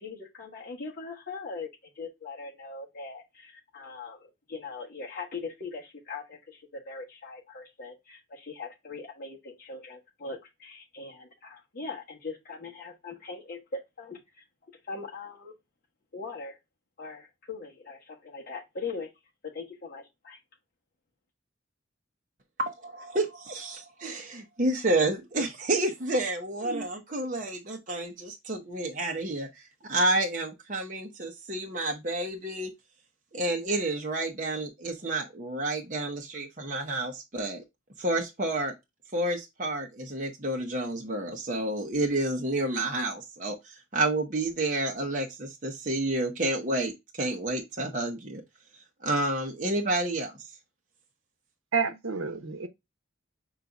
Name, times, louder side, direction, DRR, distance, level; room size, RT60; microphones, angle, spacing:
voice 1, 0.0-1.7 1.9-14.4 14.9-15.5 16.1-16.6 17.0-19.1 19.4-20.4, left 4 dB, 45° left, 1.3 m, -41 dB
voice 2, 22.6-29.5 29.8-32.7 33.3-37.6 38.0-38.7 39.1-48.4 49.0-50.3, right 2 dB, 40° right, 0.8 m, -30 dB
voice 3, 51.7-52.7, right 5 dB, 85° right, 0.8 m, -29 dB
5.6 x 3.9 x 2.3 m
head